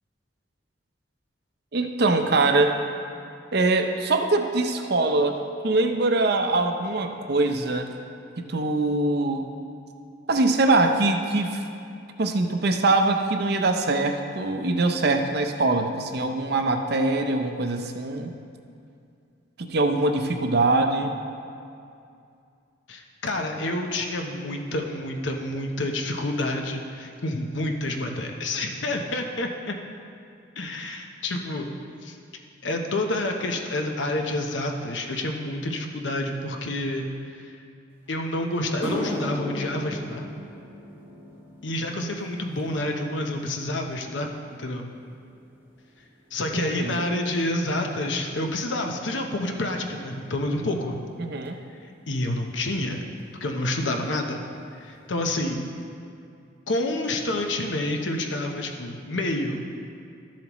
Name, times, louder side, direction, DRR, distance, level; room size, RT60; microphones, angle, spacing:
voice 1, 1.7-2.8 3.5-5.4 5.6-7.9 8.4-9.5 10.3-11.6 12.2-18.3 19.6-21.1 46.5-47.1 51.2-51.6, right 2 dB, 60° right, 5 dB, 0.7 m, -23 dB
voice 2, 22.9-29.7 30.6-31.7 32.0-32.2 32.6-37.1 37.4-37.5 38.1-40.2 41.6-44.3 44.6-44.9 46.3-51.0 52.1-53.0 53.4-54.4 54.7-55.6 56.7-59.6, left 1 dB, 80° left, 3 dB, 0.9 m, -28 dB
sound 1, 38.1-38.2 38.6-47.1 47.4-47.8 48.6-48.7 51.4-51.5 53.2-53.3 53.5-53.7 54.0-54.5 54.9-55.0 55.6-55.7, left 1 dB, 10° right, 0.8 m, -38 dB
13.0 x 7.3 x 3.1 m, 2.4 s
head